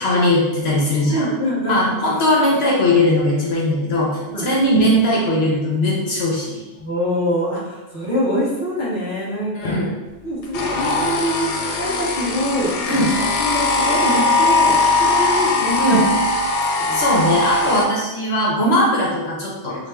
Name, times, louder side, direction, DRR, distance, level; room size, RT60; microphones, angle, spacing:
voice 1, 0.0-1.3 1.7-6.6 9.5-9.9 12.9-13.1 15.8-16.0 16.9-19.8, left 1 dB, 65° left, -4 dB, 1.1 m, -19 dB
voice 2, 1.1-2.1 4.3-4.5 6.8-9.7 10.2-12.7 13.4-16.0 16.9-17.0, equal, 15° left, -8 dB, 1.2 m, -24 dB
sound 1, 10.5-17.9, left 3 dB, 85° left, 0.9 m, -20 dB
4.9 x 2.3 x 3.5 m, 1.1 s
omnidirectional pair, 1.2 m